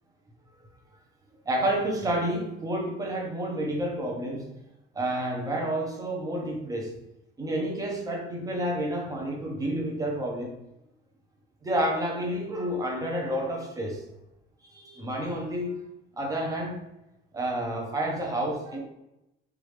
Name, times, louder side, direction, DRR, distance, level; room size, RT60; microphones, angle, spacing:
voice 1, 1.5-4.5 4.9-6.9 7.4-10.5 11.6-14.0 14.6-15.8 16.2-16.8 17.3-18.8, right 1 dB, 15° right, 0 dB, 0.9 m, -29 dB
4.9 x 2.7 x 3.3 m, 0.90 s
cardioid pair, 150°, 20 cm